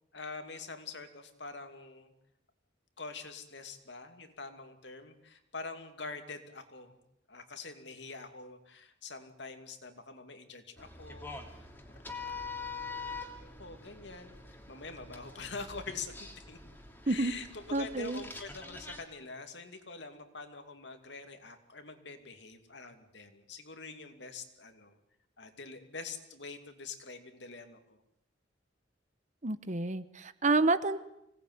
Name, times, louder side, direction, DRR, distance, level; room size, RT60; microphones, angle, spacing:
voice 1, 0.1-2.1 3.0-7.0 7.3-11.7 13.6-16.6 17.0-25.0 25.4-28.0, left 4 dB, 65° left, 7 dB, 2.6 m, -45 dB
sound 1, 10.8-19.0, left 4 dB, 10° left, 2.8 m, -45 dB
voice 2, 17.7-18.2 29.4-31.0, right 2 dB, 40° right, 13 dB, 1.1 m, -29 dB
25.5 x 18.5 x 9.6 m, 0.81 s
head